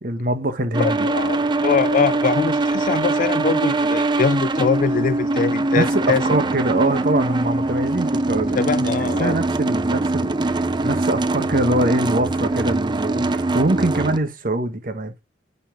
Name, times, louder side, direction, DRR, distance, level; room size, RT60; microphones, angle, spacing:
voice 1, 0.0-1.1 5.8-8.9 9.2-15.1, right 1 dB, 50° right, 1.3 m, -23 dB
sound 1, 0.7-14.2, right 2 dB, 25° right, 0.5 m, -22 dB
voice 2, 0.8-6.2 8.6-9.4, left 5 dB, 45° left, 0.3 m, -22 dB
9.9 x 5.5 x 3.9 m
head